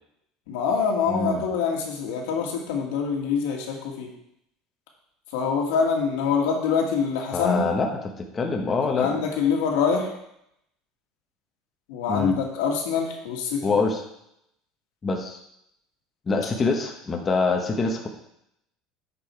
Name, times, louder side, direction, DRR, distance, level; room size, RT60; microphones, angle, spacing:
voice 1, 0.5-4.1 5.3-7.6 9.0-10.1 11.9-13.6, left 6 dB, 85° left, 0 dB, 1.9 m, -25 dB
voice 2, 1.1-1.4 7.3-9.3 12.1-12.4 13.6-14.0 15.0-15.4 16.3-18.1, left 3 dB, 20° left, 2 dB, 0.9 m, -25 dB
8.8 x 5.4 x 4.5 m, 0.78 s
cardioid pair, 145°, 0 cm